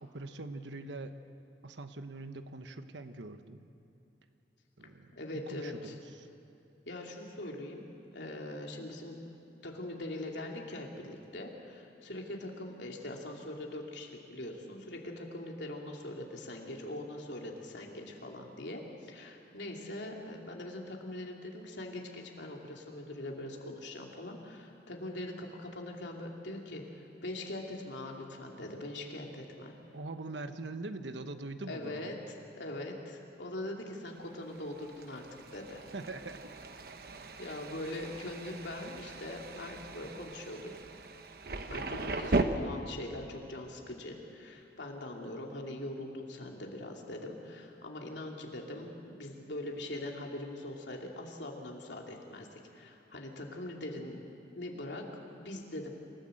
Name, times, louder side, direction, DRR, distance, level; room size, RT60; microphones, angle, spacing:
voice 1, 0.0-1.2 1.6-3.7 4.8-6.3 29.9-32.1 35.9-36.5 37.2-37.3, right 2 dB, 90° right, 9 dB, 1.1 m, -43 dB
voice 2, 5.1-5.9 6.9-7.8 8.1-9.2 9.6-29.7 31.7-35.3 35.5-35.9 37.4-40.7 41.7-54.2 54.5-55.9, left 1 dB, 85° left, 0 dB, 2.8 m, -42 dB
Thunder, 34.3-42.4, right 2 dB, 55° right, 1.0 m, -38 dB
27.0 x 15.0 x 7.8 m, 2.6 s
head